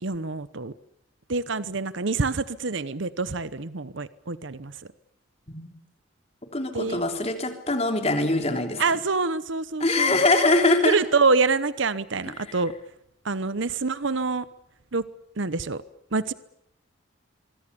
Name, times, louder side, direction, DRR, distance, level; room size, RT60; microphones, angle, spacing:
voice 1, 0.0-0.7 1.3-4.7 6.7-7.0 8.8-10.2 10.8-12.7 13.2-14.5 14.9-15.0 15.4-15.8 16.1-16.3, right 4 dB, 70° right, 15 dB, 0.9 m, -26 dB
voice 2, 6.5-8.8 9.8-11.0, left 2 dB, 30° left, 5 dB, 3.5 m, -23 dB
24.5 x 24.0 x 7.0 m, 0.77 s
head